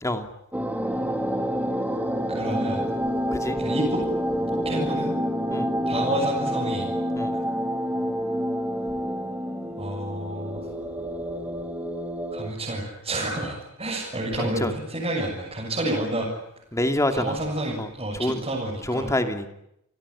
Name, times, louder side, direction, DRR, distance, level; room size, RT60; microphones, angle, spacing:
sound 1, 0.5-12.5, equal, 10° right, 2.4 m, -28 dB
voice 1, 2.3-2.8 3.6-4.0 4.6-5.2 5.9-6.9 9.8-10.6 12.3-16.3 17.1-19.1, right 1 dB, 25° right, -4 dB, 7.5 m, -29 dB
voice 2, 14.4-14.7 16.7-17.4 17.8-17.9 18.1-18.4 18.8-19.5, left 1 dB, 15° left, 6 dB, 2.7 m, -26 dB
30.0 x 20.0 x 10.0 m, 0.78 s
head